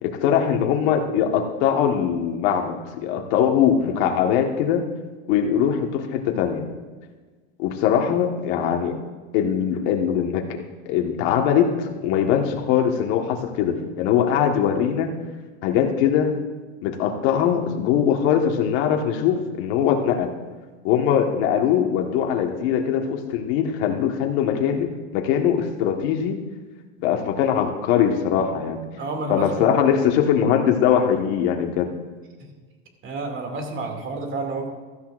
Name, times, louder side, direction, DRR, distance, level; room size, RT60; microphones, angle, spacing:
voice 1, 0.0-4.8 5.3-6.7 7.6-9.0 9.3-15.1 15.6-16.4 16.8-20.3 20.8-26.4 27.0-28.8 29.3-31.9, left 8 dB, 70° left, 3 dB, 1.6 m, -21 dB
voice 2, 29.0-30.1 32.4-32.5 33.0-34.7, right 3 dB, 35° right, 3 dB, 2.5 m, -30 dB
16.0 x 13.0 x 2.5 m, 1.4 s
supercardioid pair, 115°, 33 cm